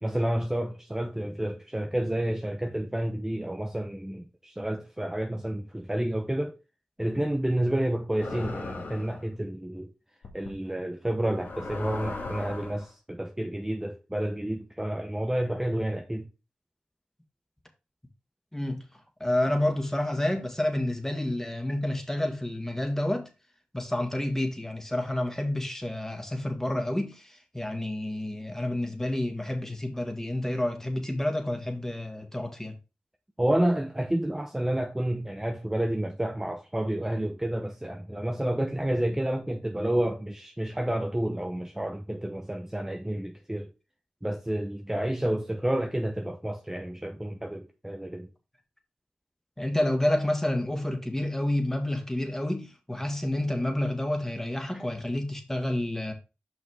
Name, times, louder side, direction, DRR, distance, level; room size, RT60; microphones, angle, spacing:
voice 1, 0.0-6.6 7.0-9.9 10.3-16.3 33.4-43.7 44.2-48.3, right 1 dB, 15° right, 0.8 m, -30 dB
sound 1, 8.2-9.2 10.2-10.5 11.3-12.9, left 3 dB, 75° left, 1.9 m, -37 dB
voice 2, 18.5-18.8 19.2-23.3 23.7-32.7 49.6-56.1, left 1 dB, 10° left, 2.0 m, -29 dB
5.7 x 5.6 x 3.7 m
cardioid pair, 40°, 4 cm